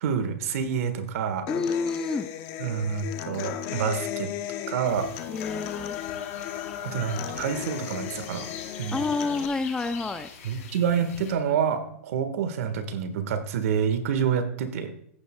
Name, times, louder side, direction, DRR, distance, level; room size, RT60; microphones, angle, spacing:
voice 1, 0.0-1.5 2.6-4.3 4.7-5.1 6.8-8.5 8.8-9.0 10.4-14.9, right 7 dB, 65° right, 10 dB, 1.5 m, -27 dB
Human voice / Acoustic guitar, 1.5-9.5, left 10 dB, 40° left, 0.8 m, -35 dB
voice 2, 1.5-2.3 5.3-6.0 8.9-10.3, left 4 dB, 10° left, 10 dB, 0.4 m, -28 dB
sound 1, 4.8-11.3, left 5 dB, 70° left, 3.7 m, -44 dB
15.0 x 9.2 x 2.3 m, 0.67 s
supercardioid pair, 150°, 8 cm